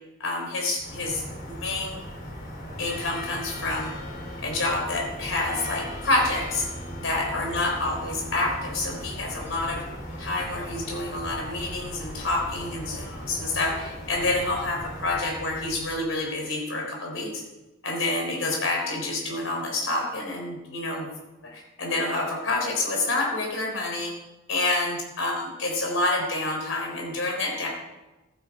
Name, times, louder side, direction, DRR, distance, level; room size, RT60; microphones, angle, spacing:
voice 1, 0.2-1.2 1.6-2.0 2.8-3.9 4.4-6.7 7.0-9.8 10.2-17.4 17.8-21.1 21.4-24.1 24.5-27.7, left 2 dB, 85° left, 0 dB, 3.7 m, -28 dB
sound 1, 0.8-16.3, equal, 50° left, 3.4 m, -38 dB
16.0 x 12.0 x 4.7 m, 1.1 s
head